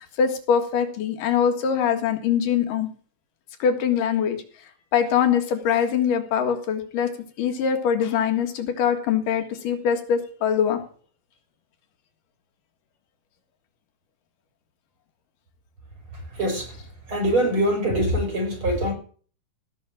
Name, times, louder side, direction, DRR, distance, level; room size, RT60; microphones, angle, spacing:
voice 1, 0.2-2.9 3.6-4.4 4.9-7.1 7.4-10.8, left 7 dB, 80° left, 6 dB, 3.3 m, -23 dB
voice 2, 16.4-16.7 17.1-18.9, right 1 dB, 40° right, 3 dB, 4.9 m, -23 dB
17.0 x 5.8 x 7.5 m, 0.43 s
omnidirectional pair, 3.8 m